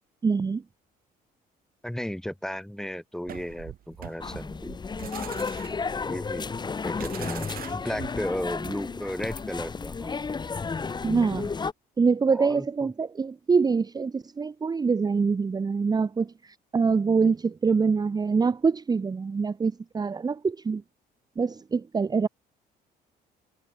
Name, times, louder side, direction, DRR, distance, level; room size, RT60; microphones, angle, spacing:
voice 1, 0.2-0.6 11.0-11.5 12.0-20.8 21.4-22.3, right 5 dB, 25° right, 1.0 m, -25 dB
voice 2, 1.8-4.7 6.1-6.6 6.8-10.1 12.3-12.9, equal, 5° left, 3.8 m, -34 dB
sound 1, 3.3-9.0, right 11 dB, 60° right, 5.6 m, -43 dB
sound 2, 4.2-11.7, left 5 dB, 25° left, 2.2 m, -33 dB
cardioid pair, 110°, 17 cm